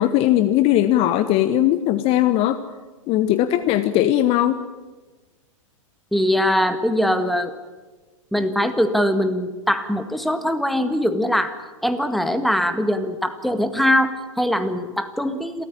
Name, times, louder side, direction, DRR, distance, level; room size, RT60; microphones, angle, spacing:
voice 1, 0.0-2.6 3.1-4.5, left 13 dB, 35° left, 11 dB, 1.1 m, -19 dB
voice 2, 6.1-7.5 8.3-11.6 11.8-15.6, equal, ahead, 9 dB, 1.8 m, -22 dB
29.0 x 14.0 x 10.0 m, 1.3 s
figure-of-eight pair, 105°, 17 cm